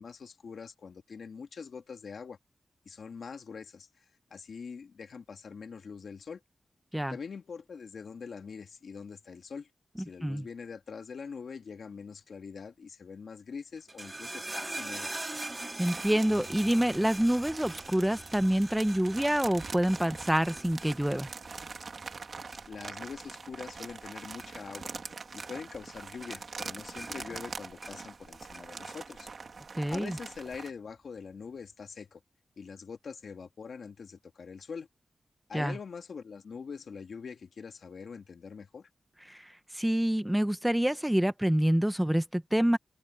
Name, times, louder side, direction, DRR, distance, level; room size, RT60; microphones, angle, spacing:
voice 1, 0.0-2.4 2.9-4.0 4.3-6.4 7.1-9.7 10.0-15.3 22.7-24.9 25.3-29.3 29.9-32.2 32.6-34.9 35.5-38.9, left 5 dB, 75° left, 2.3 m, -43 dB
sound 1, 13.8-25.1 25.4-26.0 26.2-28.2 28.5-29.3 30.0-30.1, right 2 dB, 25° right, 2.4 m, -43 dB
voice 2, 15.8-21.3 29.8-30.1 35.5-35.7 39.3-39.4 39.7-42.8, right 1 dB, 5° right, 1.1 m, -27 dB
sound 2, 15.9-30.7, right 4 dB, 60° right, 2.9 m, -44 dB
wide cardioid pair, 85°, 0 cm